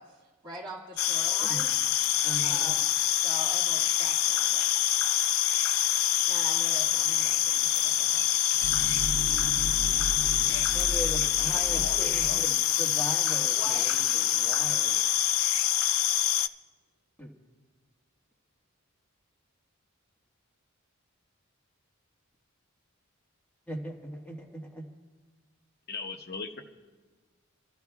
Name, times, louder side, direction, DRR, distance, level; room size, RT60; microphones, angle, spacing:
voice 1, 0.0-1.7 2.4-2.9 3.2-4.8 6.2-8.3 13.5-13.8, right 1 dB, 20° right, -7 dB, 1.7 m, -43 dB
sound 1, 1.0-16.5, left 12 dB, 80° left, 0.4 m, -26 dB
voice 2, 2.2-2.7 10.7-15.0 17.2-17.3 23.7-24.9, equal, 5° left, -2 dB, 1.6 m, -39 dB
sound 2, 5.2-5.3 5.5-13.8, right 1 dB, 85° right, 0.7 m, -38 dB
voice 3, 10.9-12.4 25.9-26.6, left 4 dB, 50° left, 4 dB, 0.9 m, -40 dB
29.0 x 12.5 x 2.4 m, 1.3 s
head